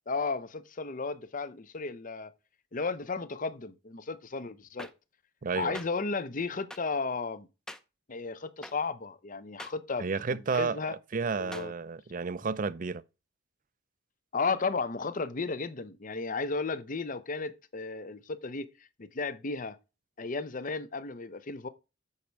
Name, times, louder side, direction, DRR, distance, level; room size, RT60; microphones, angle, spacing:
voice 1, 0.1-2.3 2.7-4.9 5.6-7.5 8.1-10.9 11.4-11.7 14.3-18.7 19.0-19.8 20.2-21.7, left 4 dB, 40° left, 0.7 m, -34 dB
sound 1, 4.8-4.9 5.7-5.9 6.7-6.8 7.7-7.8 8.6-8.7 9.6-9.7 10.5-10.7 11.5-11.7, equal, 5° left, 0.6 m, -42 dB
voice 2, 5.4-5.8 10.0-10.8 11.1-13.0, right 5 dB, 40° right, 0.5 m, -31 dB
8.6 x 6.3 x 4.6 m
head